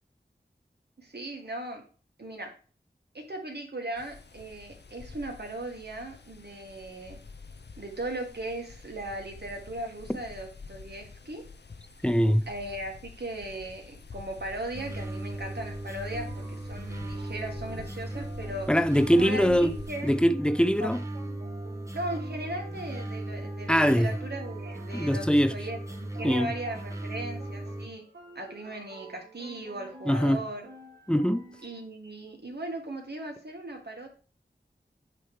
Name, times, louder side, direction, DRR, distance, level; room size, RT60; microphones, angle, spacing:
voice 1, 1.0-1.8 2.2-2.6 3.1-7.2 7.8-11.5 12.5-18.7 19.1-20.1 20.8-20.9 21.9-28.0 28.3-30.7 31.6-34.1, right 1 dB, 65° right, 1.6 m, -38 dB
sound 1, 4.0-19.9, left 4 dB, 75° left, 0.6 m, -48 dB
voice 2, 12.0-12.4 18.7-19.7 20.0-21.0 23.7-24.1 24.9-25.5 26.2-26.5 30.1-30.4 31.1-31.4, equal, 5° left, 0.5 m, -22 dB
sound 2, 14.7-27.9, right 1 dB, 15° right, 1.0 m, -37 dB
sound 3, 16.2-31.9, right 2 dB, 85° right, 1.4 m, -51 dB
8.5 x 3.1 x 4.8 m
wide cardioid pair, 50°, 18 cm